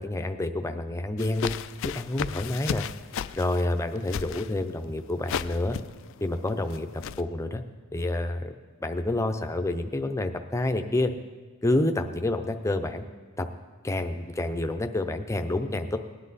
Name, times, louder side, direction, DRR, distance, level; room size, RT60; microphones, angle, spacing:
voice 1, 0.0-1.5 1.8-2.9 3.4-5.8 6.2-6.9 7.2-7.6 7.9-8.5 8.8-11.1 11.6-13.1 13.4-13.5 13.8-16.0, left 2 dB, 15° left, 6 dB, 0.6 m, -28 dB
sound 1, 1.2-7.2, left 8 dB, 65° left, 0.4 m, -35 dB
18.5 x 9.9 x 4.1 m, 1.4 s
head